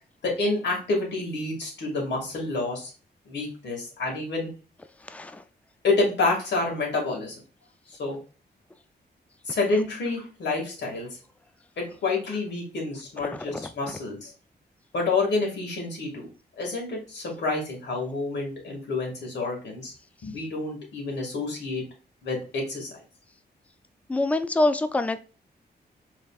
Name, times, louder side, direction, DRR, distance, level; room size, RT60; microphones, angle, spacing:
voice 1, 0.2-2.9 3.3-4.5 5.8-7.4 7.9-8.2 9.5-11.2 11.8-14.3 14.9-16.3 16.6-19.9 20.2-21.8 22.2-22.9, left 3 dB, 85° left, -1 dB, 2.1 m, -28 dB
voice 2, 5.1-5.4 13.5-13.7 24.1-25.2, left 2 dB, 10° left, 11 dB, 0.4 m, -25 dB
5.2 x 3.5 x 2.4 m, 0.35 s
wide cardioid pair, 115°, 18 cm